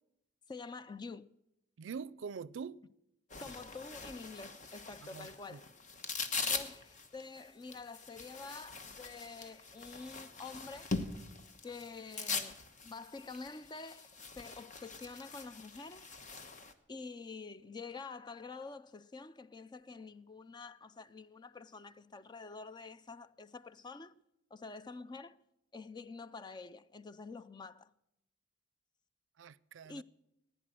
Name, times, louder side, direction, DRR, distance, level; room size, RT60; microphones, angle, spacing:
voice 1, 0.5-1.3 3.4-5.7 6.5-11.0 11.6-12.6 12.8-16.1 16.9-24.2 24.5-25.4 25.7-27.9 29.8-30.0, left 4 dB, 25° left, 0.4 m, -48 dB
voice 2, 1.8-2.8 5.0-5.6 29.4-30.0, right 6 dB, 90° right, 0.4 m, -44 dB
sound 1, 3.3-16.7, left 4 dB, 45° left, 1.1 m, -42 dB
15.5 x 10.0 x 7.6 m
head